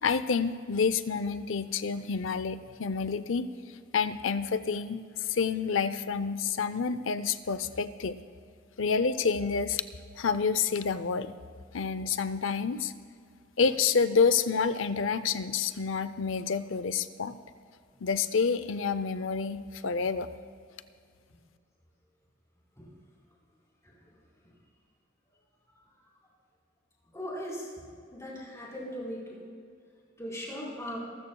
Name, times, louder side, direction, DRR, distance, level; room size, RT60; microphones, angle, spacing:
voice 1, 0.0-3.5 3.9-8.2 8.8-9.8 10.2-11.3 11.7-12.9 13.6-17.4 18.0-20.3, left 5 dB, 65° left, 13 dB, 0.6 m, -28 dB
voice 2, 27.1-27.7 28.1-29.3 30.2-31.0, equal, 15° left, -5 dB, 4.1 m, -38 dB
26.0 x 13.5 x 2.3 m, 2.2 s
head